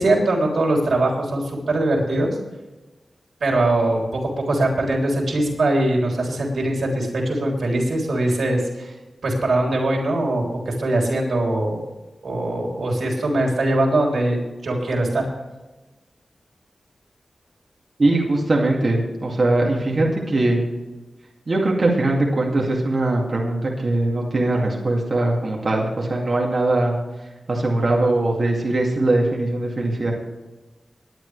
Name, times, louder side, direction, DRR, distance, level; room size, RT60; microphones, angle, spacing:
voice 1, 0.0-2.4 3.4-4.2 4.4-8.9 9.2-11.8 12.2-15.3, right 1 dB, 90° right, 0 dB, 3.4 m, -21 dB
voice 2, 18.0-20.6 21.5-27.0 27.5-30.1, right 2 dB, 45° right, -2 dB, 2.4 m, -21 dB
19.5 x 10.5 x 3.4 m, 1.1 s
wide cardioid pair, 115°, 0 cm